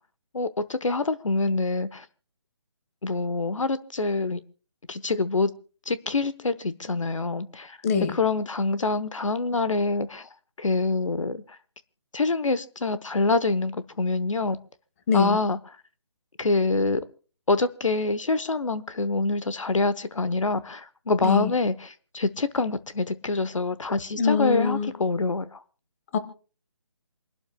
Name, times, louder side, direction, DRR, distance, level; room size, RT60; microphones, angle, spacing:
voice 1, 0.3-2.0 3.0-4.4 4.9-5.5 5.9-7.8 8.1-10.3 10.6-11.4 12.1-14.6 15.1-15.6 16.4-17.0 17.5-25.6, left 3 dB, 85° left, 14 dB, 1.0 m, -26 dB
voice 2, 7.8-8.2 15.1-15.4 21.2-21.5 24.1-24.9 26.1-26.2, left 6 dB, 30° left, 13 dB, 1.0 m, -23 dB
28.0 x 12.0 x 2.2 m, 0.38 s
figure-of-eight pair, 155°, 16 cm